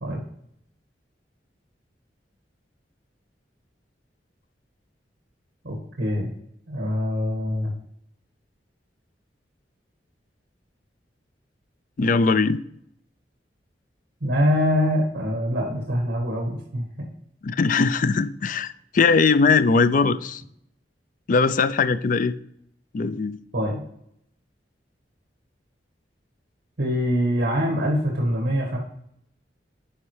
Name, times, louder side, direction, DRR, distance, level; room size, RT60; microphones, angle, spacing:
voice 1, 5.6-6.3 6.7-7.7 14.2-17.1 23.5-23.8 26.8-28.8, equal, 75° right, 1.7 m, -24 dB
voice 2, 12.0-12.6 17.4-20.4 21.3-22.3 22.9-23.4, left 4 dB, 45° left, 0.4 m, -20 dB
11.0 x 4.5 x 3.2 m
head